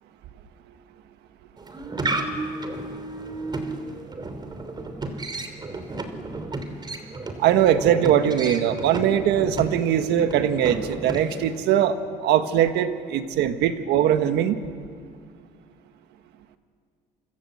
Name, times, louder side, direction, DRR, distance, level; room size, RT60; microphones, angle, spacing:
sound 1, 1.6-11.6, right 2 dB, 25° right, 3.2 m, -33 dB
voice 1, 7.4-14.6, right 10 dB, 80° right, 9 dB, 1.5 m, -21 dB
28.0 x 26.0 x 8.0 m, 2.1 s
cardioid pair, 110°, 17 cm